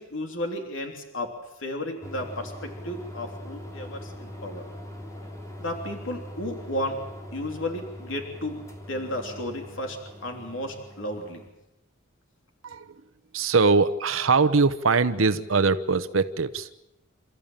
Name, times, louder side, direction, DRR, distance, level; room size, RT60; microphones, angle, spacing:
voice 1, 0.0-1.3 1.6-4.7 5.6-7.0 7.3-8.6 8.9-11.4, left 1 dB, 70° left, 3 dB, 3.3 m, -33 dB
sound 1, 2.0-11.5, left 1 dB, 15° left, 3.2 m, -42 dB
voice 2, 12.6-13.0 13.3-16.7, right 4 dB, 80° right, 11 dB, 0.9 m, -22 dB
28.5 x 14.0 x 8.9 m, 0.92 s
head